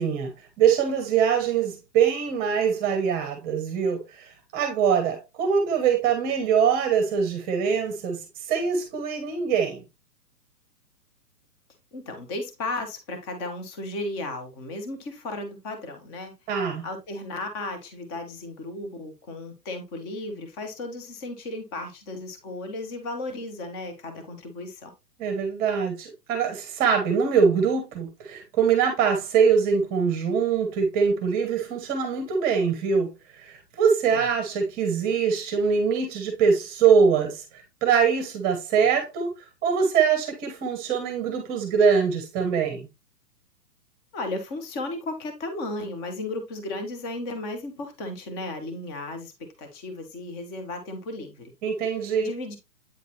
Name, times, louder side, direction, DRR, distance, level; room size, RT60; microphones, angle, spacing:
voice 1, 0.0-9.8 16.5-16.8 25.2-33.1 33.4-39.3 39.6-42.9 51.6-52.3, right 6 dB, 20° right, 1.0 m, -23 dB
voice 2, 11.9-16.3 16.8-24.9 34.1-34.3 44.1-49.3 49.6-51.5 52.2-52.6, left 2 dB, 15° left, 0.7 m, -35 dB
8.5 x 3.9 x 2.9 m
hypercardioid pair, 150°, 49 cm